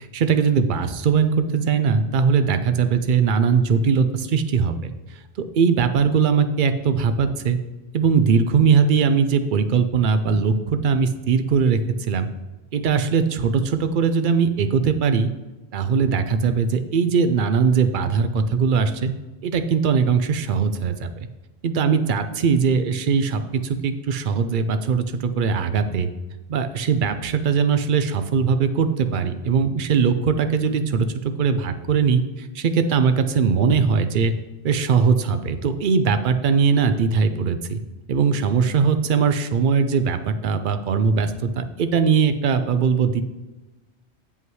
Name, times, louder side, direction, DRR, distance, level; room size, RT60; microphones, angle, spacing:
voice 1, 0.0-4.8 5.1-7.6 7.9-12.3 12.7-15.3 15.7-19.1 19.4-21.1 21.6-26.1 26.5-34.3 34.6-37.8 38.1-43.2, right 6 dB, 55° right, 9 dB, 0.7 m, -20 dB
7.9 x 5.6 x 4.7 m, 1.1 s
omnidirectional pair, 1.1 m